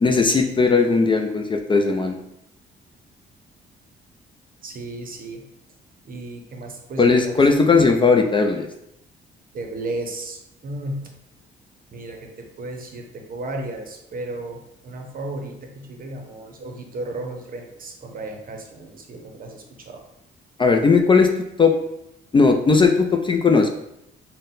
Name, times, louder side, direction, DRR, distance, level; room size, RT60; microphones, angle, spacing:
voice 1, 0.0-2.2 7.0-8.7 20.6-21.3 21.6-21.8 22.3-23.7, left 4 dB, 25° left, 3 dB, 0.3 m, -17 dB
voice 2, 4.6-5.5 6.1-7.5 9.5-11.1 11.9-20.0, right 2 dB, 45° right, 3 dB, 0.7 m, -34 dB
3.8 x 2.1 x 3.8 m, 0.82 s
cardioid pair, 90°, 20 cm